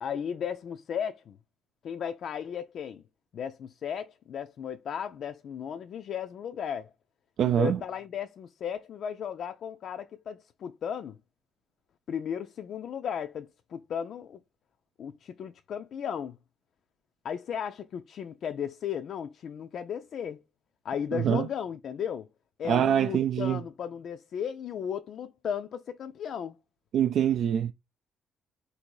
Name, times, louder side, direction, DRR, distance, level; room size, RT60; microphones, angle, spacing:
voice 1, 0.0-1.4 1.8-3.0 3.3-6.9 7.4-11.2 12.1-14.4 15.0-16.4 17.2-20.4 20.8-22.3 22.6-26.6, left 8 dB, 65° left, 0.4 m, -35 dB
voice 2, 7.4-7.8 21.1-21.5 22.7-23.6 26.9-27.7, right 9 dB, 70° right, 0.3 m, -24 dB
4.2 x 2.7 x 4.5 m
cardioid pair, 90°, 0 cm